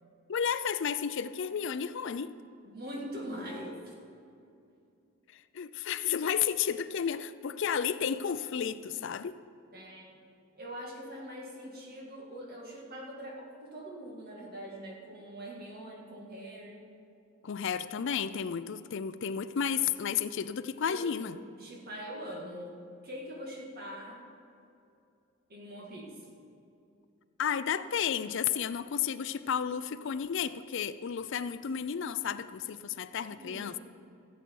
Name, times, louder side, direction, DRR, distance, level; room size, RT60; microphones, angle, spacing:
voice 1, 0.3-2.4 5.3-9.4 17.4-21.4 27.4-33.8, left 7 dB, 60° left, 13 dB, 0.4 m, -32 dB
voice 2, 2.6-4.0 9.7-10.2 10.6-16.8 20.9-22.7 23.0-24.2 25.5-26.2 33.2-33.8, equal, 45° right, -2 dB, 2.1 m, -43 dB
15.5 x 8.2 x 4.7 m, 2.6 s
head